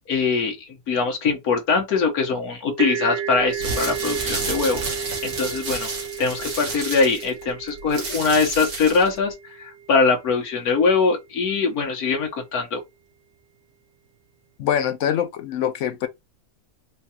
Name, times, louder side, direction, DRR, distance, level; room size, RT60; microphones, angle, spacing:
voice 1, 0.1-5.9 6.2-12.8, left 4 dB, 85° left, 1.5 m, -22 dB
sound 1, 2.8-10.3, right 8 dB, 65° right, 0.7 m, -33 dB
sound 2, 3.4-9.2, right 3 dB, 90° right, 1.8 m, -31 dB
voice 2, 14.6-16.1, left 9 dB, 65° left, 0.8 m, -24 dB
4.5 x 2.3 x 2.8 m
omnidirectional pair, 1.5 m